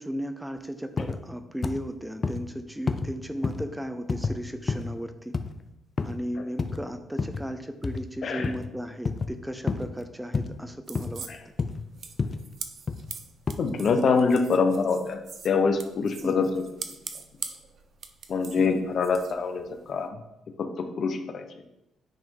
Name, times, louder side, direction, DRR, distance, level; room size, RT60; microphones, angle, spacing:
voice 1, 0.0-5.3 6.0-11.3 16.2-16.5 18.6-18.7, equal, 5° right, 8 dB, 0.6 m, -35 dB
sound 1, 1.0-1.2 1.6-1.8 2.2-2.4 2.9-3.1 3.4-3.7 4.1-4.4 4.7-4.9 5.3-5.6 6.0-6.2 6.6-6.8 7.2-7.5 7.8-8.0 8.4-8.7 9.1-9.3 9.7-9.9 10.3-10.6 11.0-11.2 11.6-11.9 12.2-12.4 12.9-13.1 13.5-13.6, left 4 dB, 35° left, 0.6 m, -29 dB
sound 2, 10.9-20.1, right 6 dB, 55° right, 0.7 m, -43 dB
voice 2, 13.6-15.2 15.4-16.6 18.3-20.1 20.6-21.4, left 4 dB, 55° left, 6 dB, 1.0 m, -25 dB
9.3 x 3.5 x 5.3 m, 0.87 s
cardioid pair, 90°, 0 cm